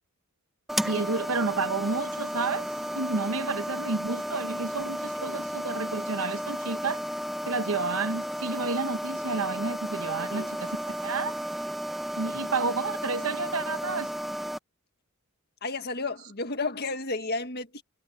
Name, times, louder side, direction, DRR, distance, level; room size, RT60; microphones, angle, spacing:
sound 1, 0.7-14.6, equal, ahead, 0.8 m, -33 dB
voice 1, 0.8-2.7 2.9-7.0 7.5-11.3 12.2-14.1, right 4 dB, 75° right, 0.9 m, -30 dB
voice 2, 10.0-10.6 15.6-17.8, left 3 dB, 50° left, 1.7 m, -33 dB
head